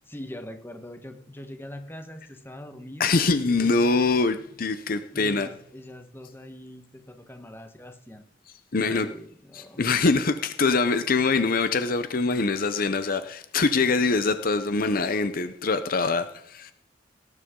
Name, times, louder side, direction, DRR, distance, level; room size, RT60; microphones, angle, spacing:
voice 1, 0.0-3.1 3.4-3.7 5.1-8.2 8.7-9.8, left 1 dB, 10° left, 1.4 m, -42 dB
voice 2, 3.0-5.5 8.7-9.1 9.5-16.7, left 4 dB, 50° left, 0.7 m, -24 dB
18.0 x 9.8 x 3.8 m
head